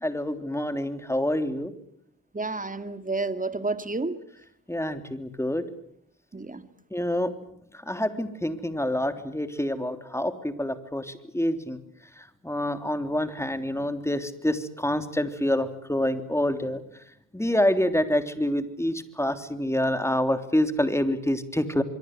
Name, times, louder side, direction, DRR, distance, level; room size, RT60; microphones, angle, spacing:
voice 1, 0.0-1.7 4.7-5.6 6.9-7.3 7.8-11.8 12.2-16.8 17.3-21.8, left 1 dB, 10° left, 9 dB, 3.4 m, -27 dB
voice 2, 2.3-4.2 6.3-6.6, right 3 dB, 25° right, 10 dB, 2.3 m, -30 dB
25.0 x 23.5 x 7.9 m, 0.70 s
cardioid pair, 65°, 33 cm